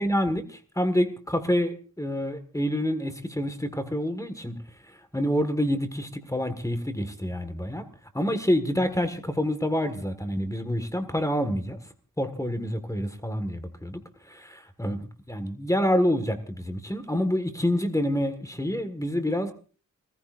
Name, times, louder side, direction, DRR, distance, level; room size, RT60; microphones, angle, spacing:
voice 1, 0.0-4.6 4.8-7.8 8.1-11.8 12.2-19.5, equal, 10° left, 8 dB, 1.8 m, -27 dB
30.0 x 15.5 x 2.6 m, 0.38 s
wide cardioid pair, 85°, 35 cm